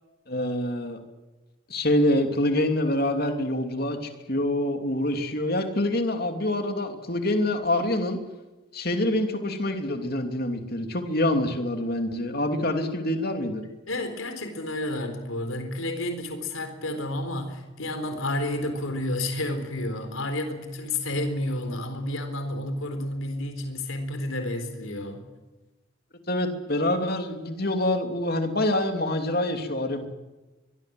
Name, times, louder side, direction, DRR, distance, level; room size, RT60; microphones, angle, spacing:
voice 1, 0.3-1.0 1.7-8.2 8.7-13.7 26.3-30.1, left 1 dB, 45° left, 6 dB, 2.9 m, -26 dB
voice 2, 13.9-25.3, left 1 dB, 80° left, 7 dB, 4.1 m, -30 dB
23.5 x 22.5 x 7.8 m, 1.2 s
head